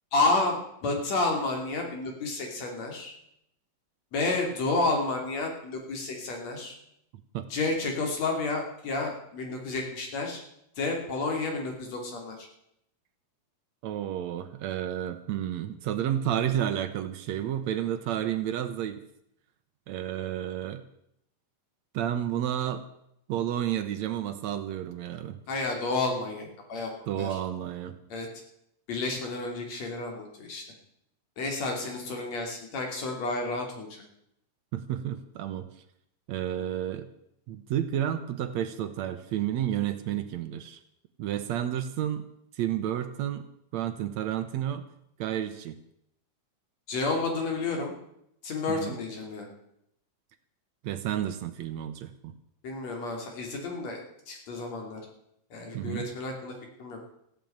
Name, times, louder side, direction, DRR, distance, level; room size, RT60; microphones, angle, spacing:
voice 1, 0.1-3.1 4.1-6.7 7.5-10.4 10.8-12.5 25.5-27.4 28.1-28.3 28.9-30.6 31.4-34.0 46.9-47.9 48.4-49.5 52.6-54.0 54.3-55.0 55.5-56.5 56.8-57.0, left 3 dB, 60° left, 2 dB, 4.1 m, -30 dB
voice 2, 13.8-19.0 19.9-20.8 21.9-22.8 23.3-25.4 27.1-28.0 34.7-35.7 36.3-37.1 37.5-40.8 41.2-42.3 42.5-43.4 43.7-44.8 45.2-45.8 48.7-48.9 50.8-52.3 55.7-56.1, right 11 dB, 70° right, 10 dB, 2.0 m, -31 dB
14.5 x 9.0 x 8.7 m, 0.76 s
omnidirectional pair, 3.5 m